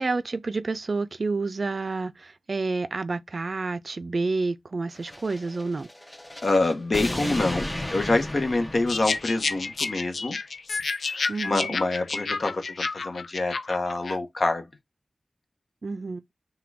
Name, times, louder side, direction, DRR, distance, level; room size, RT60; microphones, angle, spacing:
voice 1, 0.0-5.9 11.3-11.8 15.8-16.2, right 3 dB, 60° right, 0.3 m, -29 dB
sound 1, 5.0-9.7, left 1 dB, 15° left, 0.5 m, -34 dB
voice 2, 6.4-10.4 11.0-14.7, left 2 dB, 65° left, 1.0 m, -26 dB
sound 2, 8.9-14.2, left 4 dB, 90° left, 0.4 m, -30 dB
5.8 x 2.3 x 3.3 m
wide cardioid pair, 70°, 0 cm